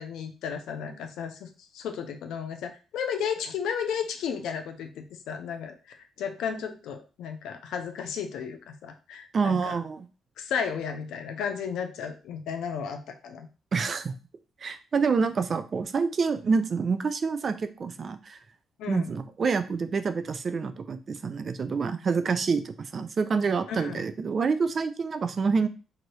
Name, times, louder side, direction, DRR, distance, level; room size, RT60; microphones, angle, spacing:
voice 1, 0.0-1.5 1.7-5.7 6.2-9.8 10.4-13.5 18.8-19.1 23.7-24.0, left 7 dB, 85° left, 6 dB, 0.5 m, -33 dB
voice 2, 9.3-10.1 13.7-14.1 14.6-18.4 18.9-25.7, right 5 dB, 45° right, 11 dB, 0.3 m, -27 dB
2.9 x 2.6 x 3.0 m, 0.34 s
cardioid pair, 90°, 0 cm